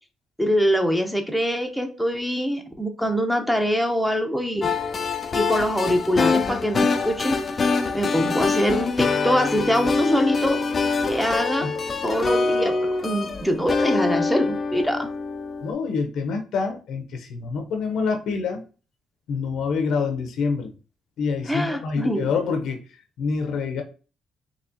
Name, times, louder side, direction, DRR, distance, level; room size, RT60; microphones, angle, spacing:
voice 1, 0.4-4.7 5.3-7.4 7.9-10.6 11.0-11.7 12.0-12.8 13.0-15.1 21.5-22.3, equal, ahead, 4 dB, 0.8 m, -24 dB
sound 1, 4.6-15.7, left 4 dB, 40° left, 0.5 m, -24 dB
voice 2, 15.6-18.6 19.3-20.7 21.2-22.8 23.2-23.8, left 5 dB, 75° left, 5 dB, 0.7 m, -26 dB
4.1 x 2.9 x 2.8 m, 0.35 s
cardioid pair, 90°, 0 cm